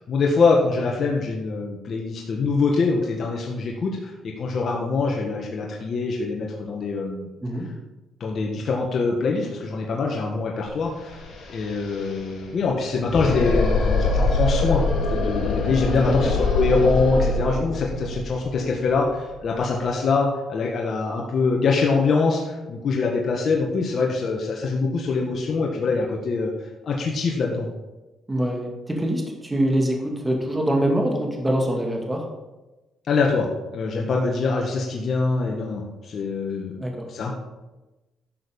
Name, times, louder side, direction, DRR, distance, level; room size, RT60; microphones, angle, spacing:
voice 1, 0.1-7.3 8.2-11.2 11.5-26.5 26.8-27.7 33.1-37.3, left 4 dB, 55° left, -1 dB, 1.6 m, -24 dB
sound 1, 10.7-10.8 11.0-19.8, left 3 dB, 70° left, 4.4 m, -25 dB
voice 2, 15.9-16.3 28.3-32.2 36.8-37.1, right 1 dB, 15° right, 1 dB, 2.6 m, -24 dB
11.5 x 6.6 x 5.4 m, 1.1 s
cardioid pair, 90°, 0 cm